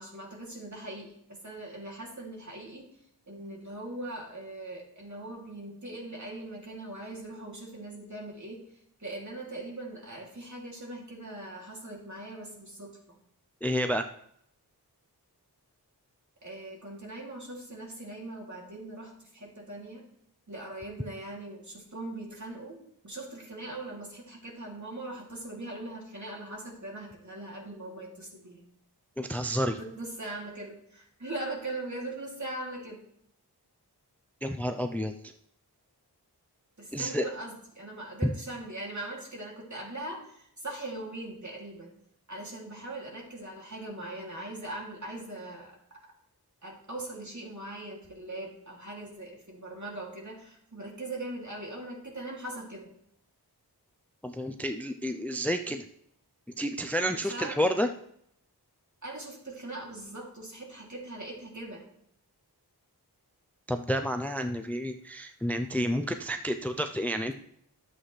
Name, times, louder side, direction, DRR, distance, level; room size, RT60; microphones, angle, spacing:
voice 1, 0.0-2.9 3.3-8.6 9.0-13.2 16.4-20.0 20.5-22.8 23.0-28.6 29.8-33.0 36.8-41.9 42.3-45.8 46.0-46.1 46.6-52.9 57.1-57.8 59.0-61.8, right 2 dB, 45° right, -2 dB, 2.8 m, -40 dB
voice 2, 13.6-14.1 29.2-29.8 34.4-35.1 36.9-37.3 38.2-38.3 54.2-55.8 56.6-57.9 63.7-67.4, equal, 5° left, 6 dB, 0.5 m, -30 dB
11.5 x 7.7 x 3.3 m, 0.71 s
wide cardioid pair, 50°, 40 cm